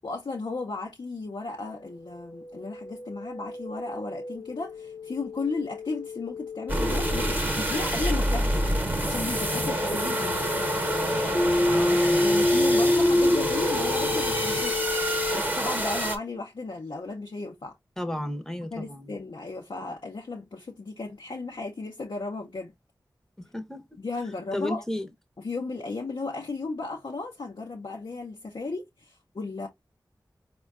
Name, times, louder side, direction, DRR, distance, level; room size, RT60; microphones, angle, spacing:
voice 1, 0.0-10.4 12.2-14.8 15.3-17.7 18.7-22.7 24.0-24.8 25.4-29.7, left 3 dB, 70° left, 0.6 m, -35 dB
sound 1, 2.1-15.4, left 2 dB, 35° left, 0.7 m, -29 dB
sound 2, 6.7-16.2, right 1 dB, 25° right, 0.9 m, -27 dB
sound 3, 8.4-14.7, right 2 dB, 45° right, 0.5 m, -40 dB
voice 2, 11.7-12.3 18.0-19.1 23.4-23.8 24.5-25.1, left 1 dB, 5° left, 0.8 m, -33 dB
4.3 x 2.2 x 2.4 m
cardioid pair, 40°, 8 cm